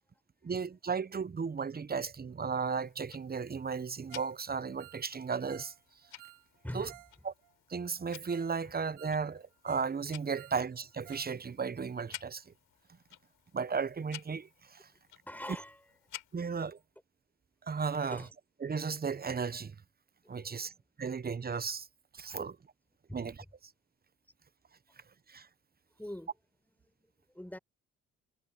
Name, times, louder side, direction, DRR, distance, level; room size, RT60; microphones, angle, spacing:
voice 1, 0.4-5.7 6.7-6.9 7.2-7.3 7.7-12.5 13.5-14.9 16.3-16.8 17.6-18.2 18.6-19.7 20.3-20.7 21.0-21.9 22.1-22.6 23.1-23.4 25.3-25.5, right 5 dB, 30° right, 1.0 m, -35 dB
Tick-tock, 2.7-16.7, left 12 dB, 75° left, 5.0 m, -54 dB
Ringtone, 4.1-4.4 4.6-7.2 7.4-7.5 8.0-8.1 8.3-8.5 8.8-10.0 10.2-11.3 11.6-11.7 12.1-12.2, right 18 dB, 80° right, 1.0 m, -55 dB
voice 2, 6.6-7.0 15.2-15.8 18.0-18.3 20.2-20.8 22.4-22.5 23.1-23.3 26.0-26.3 26.8-27.6, left 1 dB, 5° left, 6.3 m, -44 dB
supercardioid pair, 55°, 31 cm